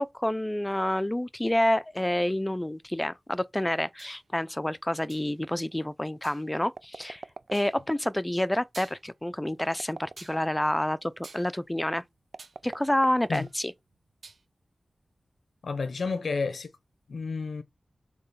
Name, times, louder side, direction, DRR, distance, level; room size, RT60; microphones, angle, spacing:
voice 1, 0.0-7.2 7.5-12.0 12.6-13.7, left 1 dB, 15° left, 0.5 m, -28 dB
sound 1, 4.0-4.2 5.1-5.4 6.2-6.5 7.5-7.8 8.4-8.5 8.7-9.3 10.2-10.4 11.2-12.6 12.9-13.6 13.9-14.4, right 4 dB, 75° right, 1.3 m, -50 dB
sound 2, 6.5-8.0 9.5-10.6 12.3-13.8, right 3 dB, 55° right, 0.4 m, -45 dB
voice 2, 15.6-16.7 17.1-17.6, left 4 dB, 85° left, 0.8 m, -30 dB
7.7 x 3.1 x 5.7 m
wide cardioid pair, 85°, 0 cm